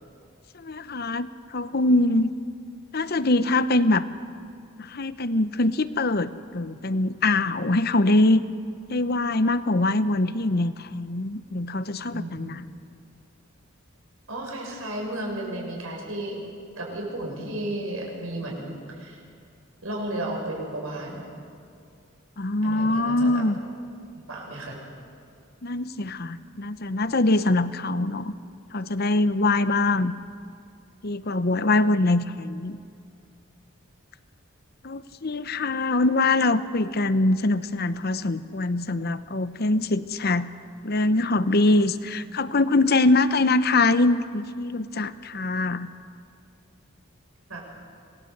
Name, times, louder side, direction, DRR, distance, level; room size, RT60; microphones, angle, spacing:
voice 1, 0.5-2.3 2.9-4.1 4.8-8.4 8.9-12.6 22.4-23.6 25.6-28.3 28.7-30.1 31.0-32.8 34.8-40.5 40.8-45.9, left 2 dB, 50° left, 13 dB, 0.8 m, -23 dB
voice 2, 12.1-12.5 14.3-16.4 16.8-19.2 19.8-21.2 22.6-23.4 24.3-24.8 47.5-47.6, right 1 dB, 80° right, -1 dB, 6.4 m, -33 dB
26.5 x 19.5 x 8.0 m, 2.4 s
head